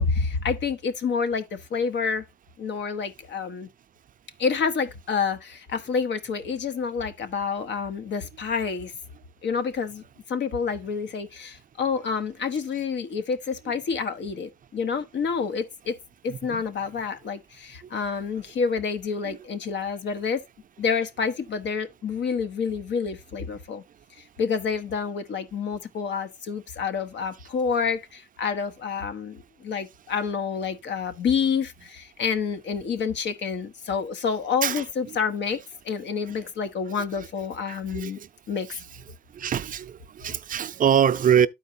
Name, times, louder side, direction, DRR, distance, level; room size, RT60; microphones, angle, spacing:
voice 1, 0.0-2.2 2.6-3.7 4.4-8.9 9.4-10.0 10.3-15.9 16.2-20.4 20.8-23.8 24.4-38.2 38.5-38.7, left 5 dB, 65° left, 1.1 m, -28 dB
voice 2, 16.3-16.6 19.2-19.4 34.6-35.2 37.7-38.3 38.7-38.8 39.3-41.5, right 8 dB, 45° right, 0.5 m, -24 dB
12.5 x 4.5 x 2.6 m
cardioid pair, 90°, 20 cm